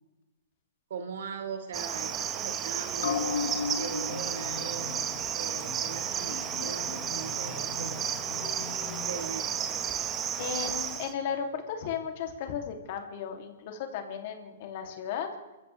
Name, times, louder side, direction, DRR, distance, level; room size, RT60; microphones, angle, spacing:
voice 1, 0.9-3.4 3.7-4.9 5.3-8.0 9.0-9.6, right 6 dB, 75° right, 5 dB, 3.5 m, -40 dB
Cricket, 1.7-11.1, right 9 dB, 25° right, 1.1 m, -33 dB
sound 1, 3.0-9.9 10.2-10.3, left 6 dB, 70° left, 1.4 m, -37 dB
voice 2, 10.4-15.3, left 8 dB, 50° left, 5 dB, 2.6 m, -35 dB
27.5 x 15.0 x 3.3 m, 1.1 s
hypercardioid pair, 140°, 0 cm